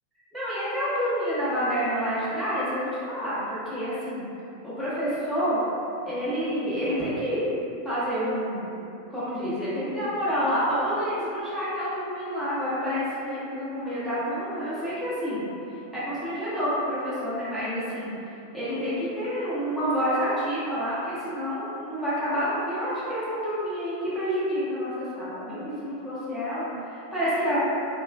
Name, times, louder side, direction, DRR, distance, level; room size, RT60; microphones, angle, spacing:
voice 1, 0.3-4.2 4.6-5.6 6.0-7.4 7.8-8.7 9.1-15.5 15.9-18.1 18.5-27.6, equal, 5° right, -13 dB, 0.8 m, -28 dB
2.3 x 2.2 x 2.4 m, 2.8 s
figure-of-eight pair, 90°, 0 cm